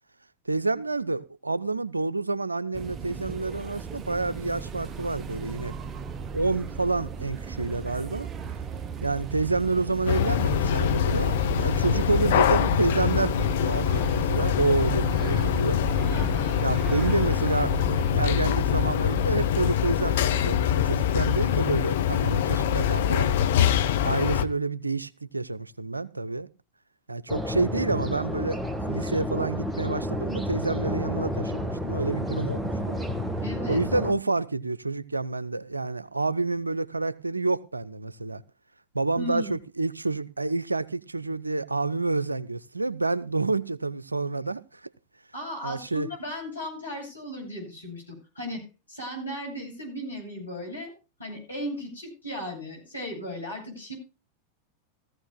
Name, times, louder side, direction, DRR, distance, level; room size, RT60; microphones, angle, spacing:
voice 1, 0.5-5.7 6.3-8.3 9.0-15.8 16.6-23.3 24.0-26.5 27.1-33.0 33.7-38.4 38.9-44.8 45.6-46.1, right 3 dB, 80° right, 0.6 m, -28 dB
sound 1, 2.7-18.3, right 6 dB, 25° right, 0.9 m, -36 dB
sound 2, 10.1-24.4, left 9 dB, 55° left, 0.9 m, -24 dB
voice 2, 16.0-16.6 33.4-33.8 39.2-39.5 45.3-50.9 51.2-53.9, left 1 dB, 80° left, 8.0 m, -36 dB
sound 3, 27.3-34.1, equal, 5° right, 1.5 m, -30 dB
17.5 x 14.5 x 2.2 m
figure-of-eight pair, 90°, 0 cm